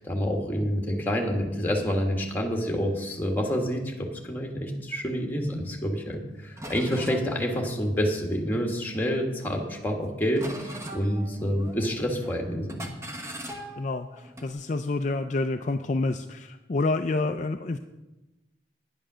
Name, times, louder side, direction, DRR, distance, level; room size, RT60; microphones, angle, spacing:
voice 1, 0.0-12.8, equal, 10° left, 1 dB, 1.6 m, -28 dB
sound 1, 6.1-6.2 6.6-9.1 9.5-10.0 10.4-12.0 12.2-12.4 12.7-14.5, right 1 dB, 15° right, 1.1 m, -41 dB
voice 2, 13.8-17.8, left 3 dB, 40° left, 6 dB, 0.4 m, -28 dB
10.5 x 9.0 x 6.2 m, 1.0 s
head